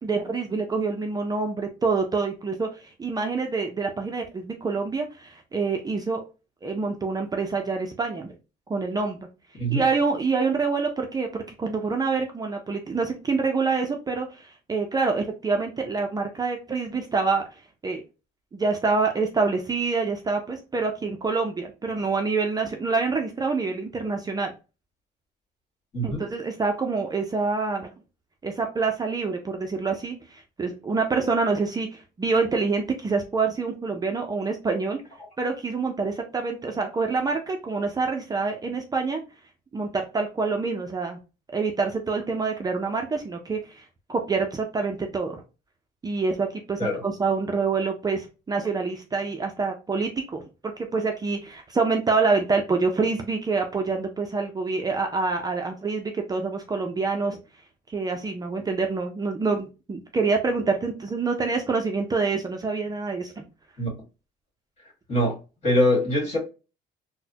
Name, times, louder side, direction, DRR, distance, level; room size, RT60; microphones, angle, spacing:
voice 1, 0.0-6.2 6.6-8.4 8.7-9.3 9.7-17.4 17.8-18.0 18.5-24.5 26.0-27.9 28.4-35.0 35.4-39.2 39.7-41.2 41.5-43.8 44.1-45.4 46.0-50.4 50.8-57.4 57.9-63.4, right 4 dB, 20° right, 3 dB, 0.5 m, -26 dB
voice 2, 25.9-26.3 46.8-47.0 63.8-63.9 65.1-65.3 65.6-66.4, equal, 40° left, -1 dB, 1.9 m, -23 dB
4.0 x 2.1 x 2.7 m, 0.30 s
cardioid pair, 110°, 17 cm